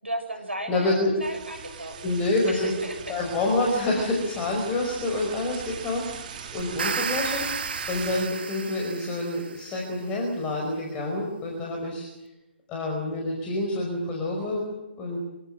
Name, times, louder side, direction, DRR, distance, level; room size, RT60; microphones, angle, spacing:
voice 1, 0.0-2.2 2.5-3.1, right 1 dB, 85° right, 4 dB, 7.0 m, -35 dB
voice 2, 0.7-1.1 2.0-2.7 3.1-12.1 12.7-14.6 15.0-15.2, left 2 dB, 20° left, 0 dB, 5.2 m, -27 dB
sound 1, 1.2-8.3, right 7 dB, 45° right, 3.2 m, -41 dB
sound 2, 6.6-9.8, right 5 dB, 60° right, 2.1 m, -32 dB
26.0 x 17.5 x 8.1 m, 1.0 s
figure-of-eight pair, 135°, 6 cm